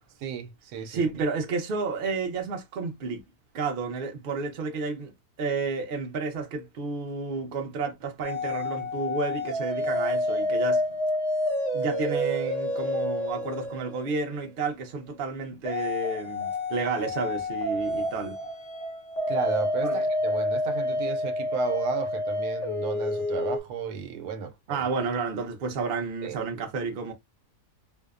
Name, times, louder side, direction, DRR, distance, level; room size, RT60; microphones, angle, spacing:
voice 1, 0.2-1.3 19.3-24.9 26.2-26.4, right 6 dB, 90° right, 1.1 m, -33 dB
voice 2, 0.9-3.2 3.5-5.1 5.4-10.8 11.7-18.4 19.8-20.0 24.7-27.1, right 4 dB, 50° right, 0.6 m, -31 dB
sound 1, 8.2-14.5 15.7-23.6, left 1 dB, 80° left, 0.3 m, -29 dB
2.7 x 2.1 x 2.3 m
omnidirectional pair, 1.6 m